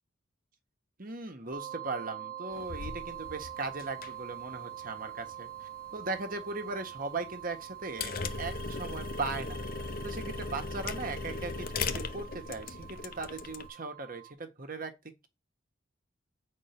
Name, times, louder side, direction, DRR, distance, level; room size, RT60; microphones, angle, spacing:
voice 1, 1.0-9.7 10.0-14.9, right 3 dB, 45° right, 1.5 m, -38 dB
sound 1, 1.5-14.3, right 12 dB, 20° right, 0.9 m, -45 dB
sound 2, 2.5-13.7, left 4 dB, 50° left, 0.8 m, -39 dB
8.3 x 4.4 x 5.9 m
head